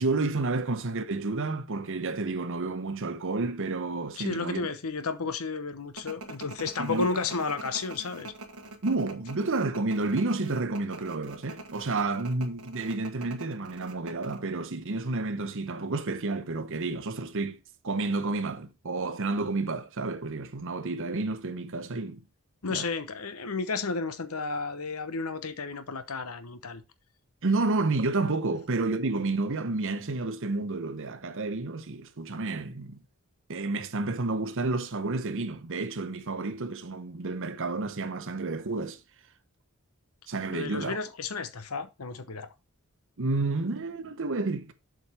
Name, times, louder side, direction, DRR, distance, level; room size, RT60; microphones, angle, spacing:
voice 1, 0.0-4.7 6.8-7.1 8.8-17.6 17.8-22.2 22.7-22.9 27.4-33.0 33.5-39.0 40.3-41.0 43.2-44.7, right 3 dB, 60° right, 0.9 m, -30 dB
voice 2, 4.2-8.3 22.6-26.8 40.5-42.5, left 4 dB, 75° left, 0.9 m, -32 dB
sound 1, 6.0-14.4, right 2 dB, 85° right, 1.4 m, -44 dB
7.8 x 5.3 x 4.3 m
head